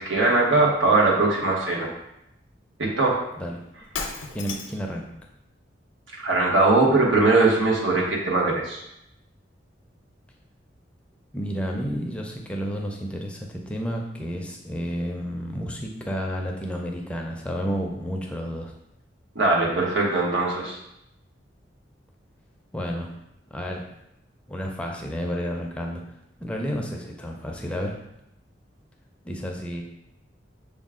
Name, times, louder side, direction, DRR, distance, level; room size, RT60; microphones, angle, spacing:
voice 1, 0.0-1.9 2.8-3.2 6.2-8.8 19.3-20.8, right 3 dB, 90° right, -3 dB, 1.1 m, -21 dB
Shatter, 3.9-4.9, left 5 dB, 90° left, 0.6 m, -33 dB
voice 2, 4.3-5.1 11.3-18.7 22.7-23.1 23.5-23.8 24.5-26.0 26.4-28.0 29.2-29.8, equal, 5° left, 0 dB, 0.4 m, -31 dB
6.2 x 2.3 x 3.6 m, 0.82 s
head